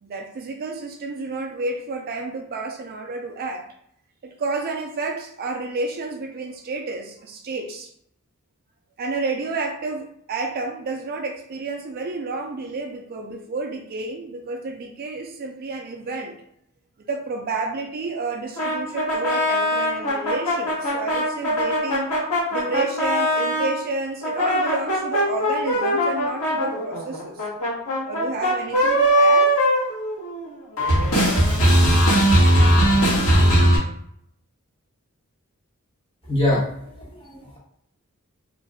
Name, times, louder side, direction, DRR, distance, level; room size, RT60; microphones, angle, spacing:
voice 1, 0.0-3.7 4.2-7.9 9.0-16.4 17.1-22.1 22.5-27.4 28.1-29.5, right 3 dB, 45° right, 4 dB, 0.3 m, -30 dB
sound 1, 18.6-23.7 24.2-30.5 30.8-33.8, equal, 65° left, 1.2 m, -20 dB
voice 2, 36.3-37.6, left 1 dB, 25° left, -5 dB, 1.0 m, -24 dB
2.6 x 2.2 x 3.3 m, 0.70 s
head